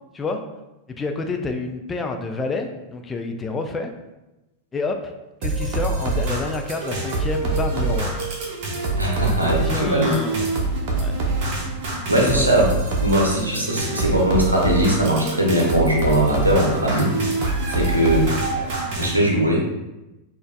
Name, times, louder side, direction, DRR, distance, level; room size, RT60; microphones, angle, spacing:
voice 1, 0.9-3.9 4.7-5.1 5.4-8.2 9.2-10.5 11.0-11.2 12.2-12.5, left 3 dB, 15° left, 4 dB, 0.4 m, -29 dB
sound 1, 5.4-19.1, right 2 dB, 45° right, 0.9 m, -25 dB
voice 2, 9.0-10.1 12.1-12.7 13.0-17.4 17.7-18.3 19.0-19.8, right 1 dB, 80° right, -1 dB, 0.8 m, -20 dB
6.2 x 2.5 x 2.2 m, 0.99 s
figure-of-eight pair, 90°, 0 cm